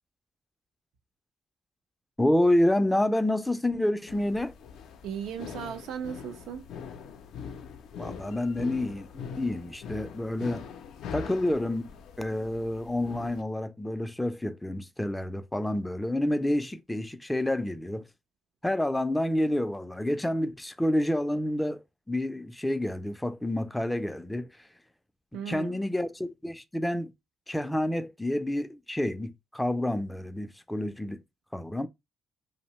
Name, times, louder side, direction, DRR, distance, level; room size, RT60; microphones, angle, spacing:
voice 1, 2.2-4.5 8.0-10.6 11.1-11.9 12.2-18.1 18.6-24.7 25.5-27.1 27.5-31.2 31.5-31.9, left 1 dB, 10° left, 0.3 m, -28 dB
sound 1, 4.1-13.4, left 7 dB, 80° left, 0.4 m, -42 dB
voice 2, 5.0-6.7 25.3-25.8, right 8 dB, 85° right, 0.4 m, -37 dB
2.7 x 2.0 x 2.9 m
cardioid pair, 90°, 0 cm